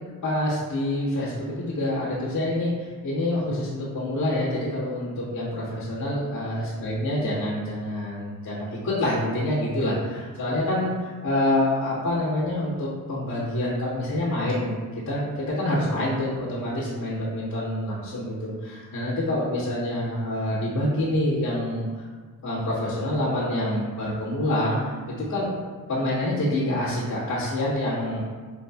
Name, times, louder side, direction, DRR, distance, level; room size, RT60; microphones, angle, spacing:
voice 1, 0.2-14.7 15.0-15.3 15.5-21.8 22.4-25.5 25.9-28.2, left 1 dB, 90° left, -15 dB, 1.5 m, -26 dB
4.9 x 2.5 x 2.3 m, 1.5 s
cardioid pair, 75°, 34 cm